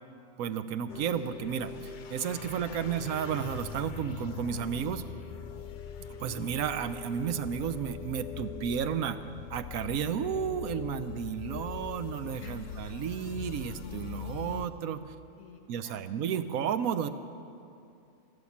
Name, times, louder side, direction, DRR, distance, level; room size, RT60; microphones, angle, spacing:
voice 1, 0.4-5.0 6.1-9.2 9.5-15.0 15.7-17.1, right 8 dB, 80° right, 11 dB, 1.1 m, -32 dB
sound 1, 0.9-14.7, left 7 dB, 60° left, 0.5 m, -42 dB
voice 2, 12.4-12.7 15.4-16.1, left 6 dB, 85° left, 4 dB, 1.8 m, -52 dB
13.0 x 13.0 x 7.2 m, 2.5 s
omnidirectional pair, 1.5 m